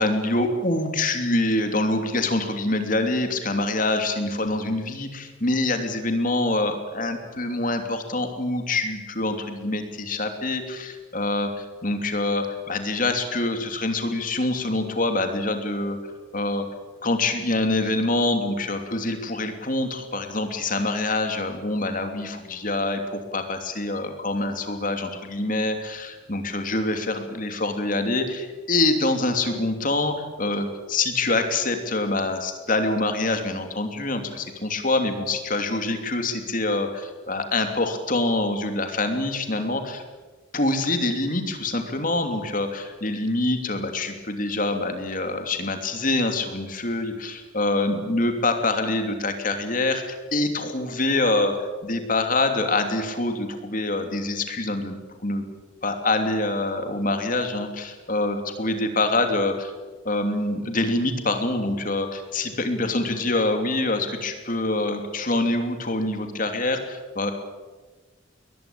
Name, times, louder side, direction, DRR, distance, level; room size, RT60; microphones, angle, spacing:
voice 1, 0.0-16.0 16.3-16.7 17.0-40.0 40.5-55.4 55.8-59.7 60.0-67.3, left 2 dB, 45° left, 6 dB, 3.0 m, -25 dB
22.0 x 20.5 x 8.7 m, 1.3 s
head